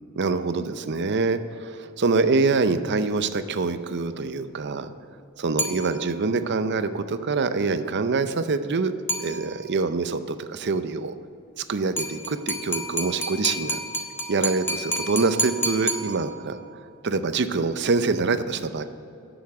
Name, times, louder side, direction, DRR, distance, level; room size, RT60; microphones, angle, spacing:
voice 1, 0.2-4.9 5.4-8.9 9.2-11.1 11.6-13.8 14.3-16.6 17.0-18.8, right 4 dB, 55° right, 11 dB, 0.6 m, -25 dB
sound 1, 5.6-6.4 9.1-9.8 12.0-16.6, right 1 dB, 10° left, 1.1 m, -30 dB
10.5 x 7.1 x 7.6 m, 2.6 s
head